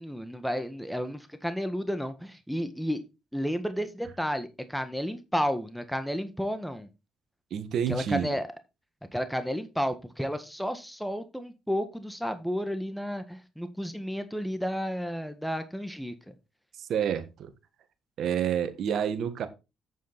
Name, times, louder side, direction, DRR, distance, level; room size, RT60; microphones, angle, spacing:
voice 1, 0.0-3.0 3.3-6.9 7.9-8.5 9.1-16.1, equal, ahead, 9 dB, 1.6 m, -32 dB
voice 2, 7.5-8.3 16.8-17.5 18.2-19.5, right 8 dB, 65° right, 10 dB, 1.6 m, -29 dB
8.5 x 7.4 x 4.2 m, 0.26 s
supercardioid pair, 55°, 0 cm